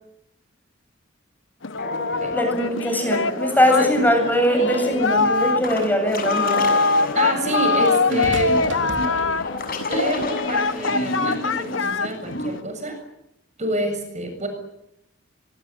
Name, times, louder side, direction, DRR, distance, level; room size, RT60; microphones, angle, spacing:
Singing, 1.6-12.6, left 4 dB, 75° left, 1.3 m, -24 dB
sound 1, 1.8-12.6, left 2 dB, 50° left, 6.9 m, -31 dB
voice 1, 2.3-6.7, equal, 10° left, 5 dB, 7.8 m, -21 dB
sound 2, 4.9-5.0 7.8-9.7 10.7-10.9, right 1 dB, 65° right, 4.0 m, -35 dB
voice 2, 7.1-8.6 9.9-13.0 13.6-14.5, right 1 dB, 35° right, 6 dB, 7.3 m, -27 dB
24.0 x 23.0 x 9.3 m, 0.80 s
head